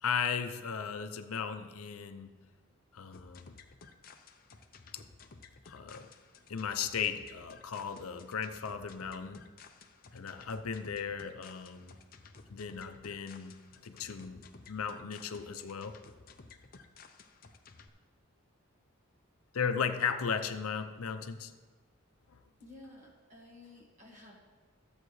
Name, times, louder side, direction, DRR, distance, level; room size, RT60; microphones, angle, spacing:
voice 1, 0.0-2.3 2.9-3.5 5.7-6.1 6.5-9.4 10.1-12.0 12.5-16.0 19.5-21.5, left 6 dB, 80° left, 8 dB, 0.6 m, -36 dB
sound 1, 3.1-17.9, left 4 dB, 40° left, 0.6 m, -55 dB
voice 2, 22.6-24.4, left 2 dB, 35° right, -1 dB, 1.7 m, -53 dB
14.0 x 8.0 x 3.2 m, 1.4 s
head